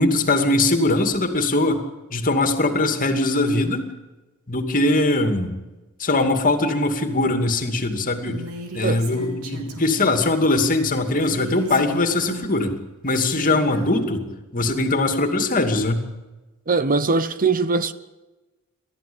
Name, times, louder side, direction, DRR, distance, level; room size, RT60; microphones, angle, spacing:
voice 1, 0.0-1.8 2.1-3.9 4.5-5.6 6.0-8.4 8.7-12.8 13.0-14.2 14.5-16.0, left 2 dB, 40° left, 2.6 m, -21 dB
Female speech woman speaking, 8.3-10.2 11.2-12.6 13.1-14.0, right 2 dB, 70° right, 3.6 m, -36 dB
voice 2, 16.7-17.9, right 4 dB, 40° right, 0.8 m, -21 dB
29.5 x 14.0 x 8.7 m
head